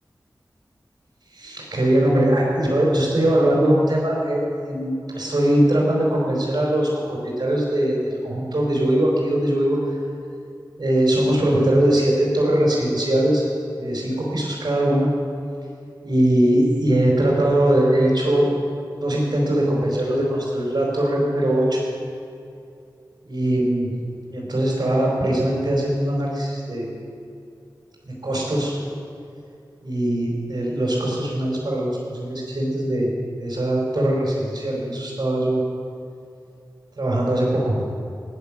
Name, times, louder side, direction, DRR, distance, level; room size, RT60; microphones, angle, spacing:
voice 1, 1.3-8.0 8.2-9.8 10.8-13.4 13.8-15.1 16.0-18.5 18.9-21.8 23.2-23.9 24.3-26.9 28.0-28.7 29.8-33.1 33.4-35.6 37.0-37.8, right 1 dB, 55° right, -4 dB, 4.8 m, -21 dB
16.0 x 10.5 x 7.4 m, 2.6 s
wide cardioid pair, 50°, 8 cm